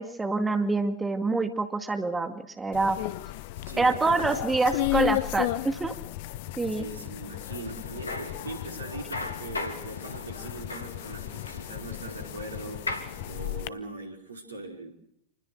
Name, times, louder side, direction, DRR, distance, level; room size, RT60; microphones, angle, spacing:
voice 1, 0.0-3.0 3.8-5.9 6.6-6.9, right 3 dB, 10° right, 6 dB, 2.2 m, -26 dB
sound 1, 2.7-13.7, left 17 dB, 50° left, 1.0 m, -34 dB
voice 2, 3.6-4.3 6.6-13.0 13.2-14.9, right 2 dB, 75° right, 3 dB, 5.1 m, -41 dB
sound 2, 7.5-13.5, left 2 dB, 80° left, 3.0 m, -39 dB
28.0 x 20.5 x 6.5 m, 0.75 s
figure-of-eight pair, 90°, 0 cm